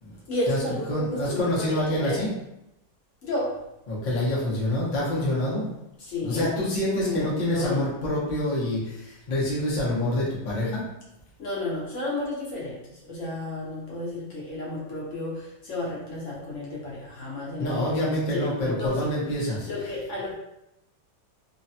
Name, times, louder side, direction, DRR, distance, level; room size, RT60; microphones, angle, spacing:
voice 1, 0.3-2.2 3.2-3.6 6.0-6.5 6.8-7.8 11.4-19.1 19.7-20.3, left 2 dB, 60° left, -5 dB, 0.8 m, -32 dB
voice 2, 0.9-2.3 3.9-5.7 6.2-10.8 17.6-19.7, left 1 dB, 75° left, -6 dB, 0.4 m, -26 dB
3.2 x 2.1 x 2.7 m, 0.86 s
omnidirectional pair, 2.0 m